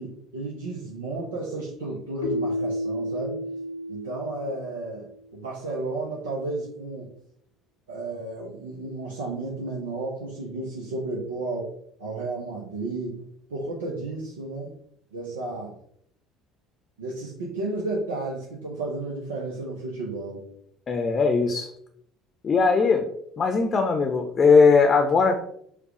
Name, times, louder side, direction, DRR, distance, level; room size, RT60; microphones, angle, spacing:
voice 1, 0.0-3.4 3.9-7.1 7.9-11.7 12.0-14.7 15.1-15.7 17.0-20.4, right 2 dB, 75° right, -4 dB, 0.8 m, -33 dB
Keyboard (musical), 2.2-5.1, equal, 85° left, 0.8 m, -31 dB
voice 2, 20.9-21.7 22.4-23.0 23.4-25.4, left 4 dB, 35° left, 5 dB, 0.7 m, -19 dB
4.7 x 2.4 x 4.8 m, 0.70 s
figure-of-eight pair, 60°, 0 cm